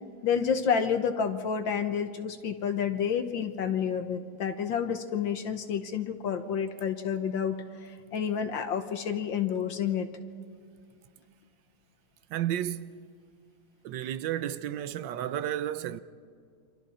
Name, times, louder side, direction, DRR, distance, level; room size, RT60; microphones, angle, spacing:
voice 1, 0.2-10.1, left 7 dB, 65° left, 1.6 m, -29 dB
voice 2, 12.3-13.1 13.8-16.0, right 11 dB, 65° right, 1.3 m, -32 dB
29.0 x 26.0 x 4.2 m
omnidirectional pair, 2.4 m